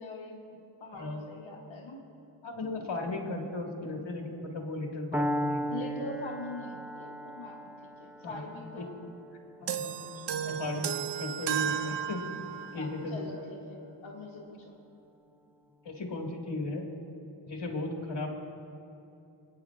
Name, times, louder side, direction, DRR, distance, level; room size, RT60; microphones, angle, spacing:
voice 1, 0.0-2.0 5.7-8.9 9.8-10.9 12.7-14.7, left 2 dB, 90° left, -1 dB, 1.2 m, -43 dB
voice 2, 0.9-1.2 2.4-5.7 8.2-8.4 8.7-8.9 9.6-10.0 10.5-12.2 12.7-13.3 15.8-16.9 17.5-18.3, left 2 dB, 65° left, 0 dB, 2.1 m, -36 dB
Piano, 5.1-13.1, right 1 dB, 5° right, 0.5 m, -38 dB
sound 1, 9.7-12.9, right 8 dB, 65° right, 0.5 m, -33 dB
28.5 x 9.8 x 2.5 m, 2.7 s
wide cardioid pair, 70°, 46 cm